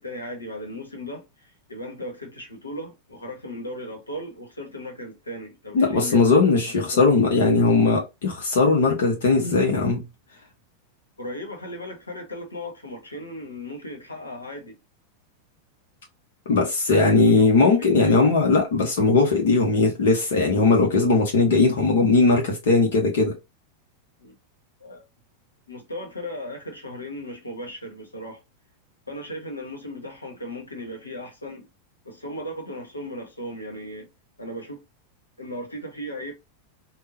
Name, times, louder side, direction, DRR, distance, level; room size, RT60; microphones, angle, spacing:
voice 1, 0.0-7.3 11.2-14.8 17.0-18.1 24.2-24.4 24.8-25.0 25.7-28.4 29.1-31.7 32.0-34.1 34.4-34.8 35.4-36.3, left 1 dB, 80° left, 1.1 m, -37 dB
voice 2, 5.7-10.0 16.5-23.3, left 3 dB, 55° left, 0.9 m, -19 dB
3.6 x 2.2 x 2.7 m
figure-of-eight pair, 90°, 0 cm